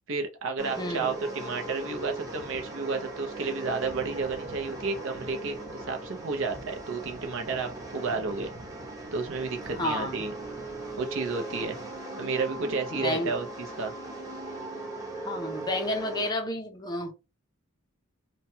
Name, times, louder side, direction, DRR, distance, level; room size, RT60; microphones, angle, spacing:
voice 1, 0.1-8.5 9.1-10.3 11.0-11.8 12.2-13.9, right 4 dB, 60° right, 0.7 m, -32 dB
sound 1, 0.6-16.3, right 2 dB, 15° right, 0.8 m, -39 dB
voice 2, 0.8-1.1 9.7-10.2 12.9-13.3 15.1-17.1, left 1 dB, 20° left, 0.5 m, -31 dB
3.1 x 2.2 x 2.8 m
head